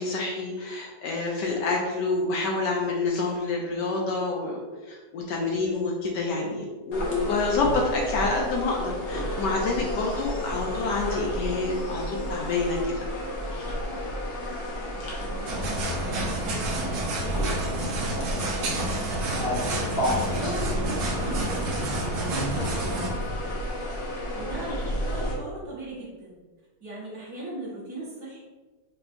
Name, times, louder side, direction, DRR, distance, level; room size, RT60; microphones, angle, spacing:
voice 1, 0.0-4.6 4.9-13.1, left 3 dB, 75° left, -1 dB, 1.1 m, -28 dB
sound 1, 6.9-25.3, equal, 50° left, 0.7 m, -31 dB
voice 2, 15.2-23.6 24.3-26.4 26.8-28.4, right 2 dB, 55° right, -7 dB, 1.6 m, -39 dB
sound 2, 15.5-23.1, right 1 dB, 75° right, 0.7 m, -30 dB
4.6 x 3.0 x 2.5 m, 1.3 s
omnidirectional pair, 2.1 m